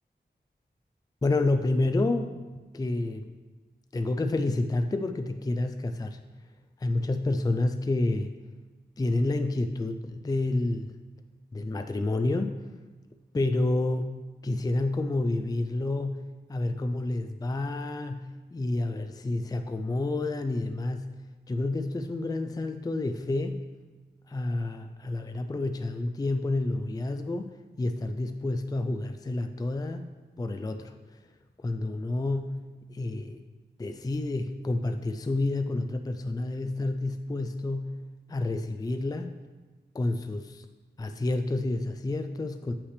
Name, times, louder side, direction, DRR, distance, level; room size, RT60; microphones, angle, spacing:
voice 1, 1.2-2.4 2.7-3.3 3.9-6.2 6.8-8.4 9.0-11.0 11.5-12.6 13.3-14.2 14.4-21.1 21.5-23.6 24.3-30.1 30.4-30.9 31.6-32.6 32.9-33.4 33.8-38.0 38.3-39.3 39.9-40.7 41.0-42.7, left 2 dB, 20° left, 7 dB, 0.4 m, -29 dB
8.0 x 5.9 x 3.2 m, 1.2 s
wide cardioid pair, 75°, 18 cm